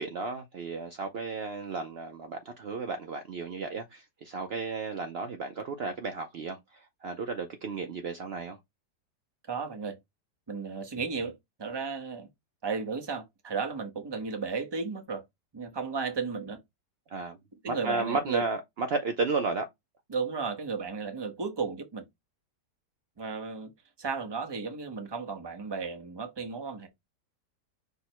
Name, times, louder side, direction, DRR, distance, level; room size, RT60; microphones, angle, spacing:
voice 1, 0.0-8.6 17.1-17.4 17.7-19.7, right 4 dB, 80° right, 0.5 m, -33 dB
voice 2, 9.5-10.0 10.5-12.3 12.6-15.2 15.5-16.6 17.6-18.5 20.1-22.0 23.2-23.7 24.0-26.9, right 5 dB, 25° right, 0.6 m, -34 dB
5.5 x 2.1 x 4.5 m
omnidirectional pair, 1.8 m